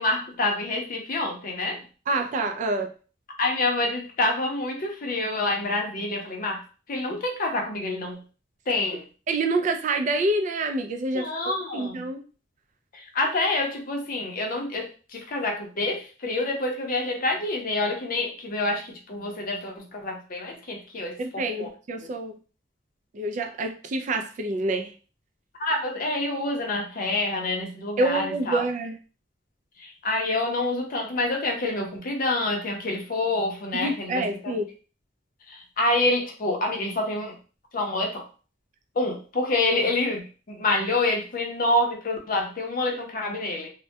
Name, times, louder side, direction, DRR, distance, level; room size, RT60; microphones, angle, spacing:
voice 1, 0.0-1.8 3.4-6.6 6.9-8.2 8.7-9.0 11.1-12.0 12.9-21.7 25.6-28.6 29.8-34.5 35.5-37.4 37.7-38.3 39.0-43.7, left 2 dB, 50° left, 2 dB, 0.6 m, -27 dB
voice 2, 2.1-2.9 9.3-11.3 11.7-12.2 21.2-22.4 23.1-24.9 28.0-29.0 33.7-34.7, right 2 dB, 45° right, 5 dB, 0.3 m, -27 dB
2.2 x 2.1 x 2.7 m, 0.36 s
head